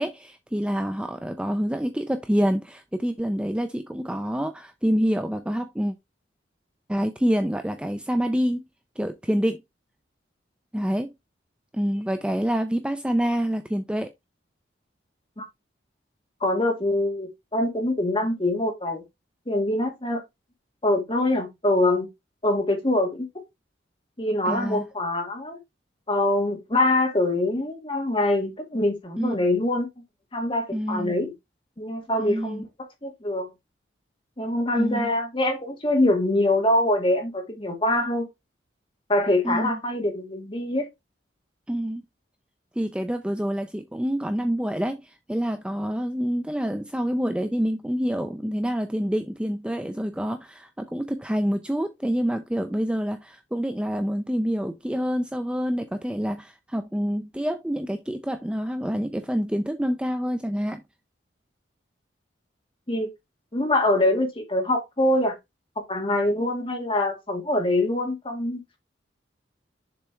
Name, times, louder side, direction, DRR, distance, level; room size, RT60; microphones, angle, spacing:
voice 1, 0.0-5.9 6.9-8.6 9.0-9.6 10.7-11.1 11.7-14.1 24.5-24.9 29.2-29.3 30.7-31.2 32.2-32.6 34.7-35.1 39.4-39.8 41.7-42.0 42.8-60.8, equal, 5° right, 0.4 m, -27 dB
voice 2, 16.4-19.0 19.5-20.2 20.8-22.1 22.4-23.3 24.2-25.6 26.1-29.9 30.3-31.3 31.8-33.5 34.4-38.3 39.1-40.9 62.9-63.1 63.5-65.4 65.9-68.8, left 1 dB, 30° left, 1.7 m, -24 dB
7.0 x 3.3 x 4.4 m
head